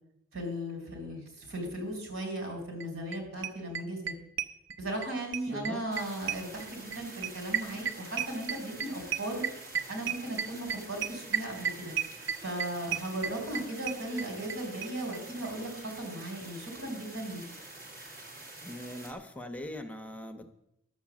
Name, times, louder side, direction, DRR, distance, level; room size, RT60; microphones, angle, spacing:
voice 1, 0.3-4.1 4.8-9.4 9.9-11.9 12.4-17.4, right 1 dB, 90° right, 3 dB, 4.2 m, -37 dB
sound 1, 2.8-2.9 3.1-3.2 3.4-5.1 5.3-14.6 14.8-14.9 15.1-15.2 15.4-15.5, right 8 dB, 65° right, 0.7 m, -33 dB
voice 2, 5.5-5.9 18.6-20.5, left 1 dB, 5° left, 5 dB, 0.7 m, -41 dB
sound 2, 5.9-19.1, right 2 dB, 45° right, 2.1 m, -47 dB
11.0 x 7.3 x 7.3 m, 0.82 s
head